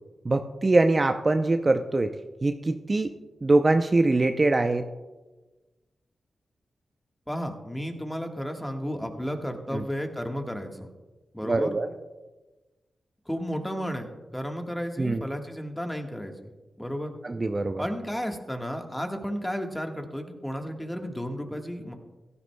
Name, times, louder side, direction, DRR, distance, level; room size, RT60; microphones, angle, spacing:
voice 1, 0.2-2.1 2.4-3.1 3.4-4.8 9.7-9.8 11.4-11.9 15.0-15.2 17.2-17.8, right 2 dB, 35° right, 7 dB, 0.5 m, -23 dB
voice 2, 7.3-10.9 11.3-11.7 13.3-16.3 16.8-17.1 17.8-21.9, equal, 10° left, 4 dB, 1.4 m, -33 dB
15.5 x 11.0 x 2.2 m, 1.2 s
cardioid pair, 50°, 0 cm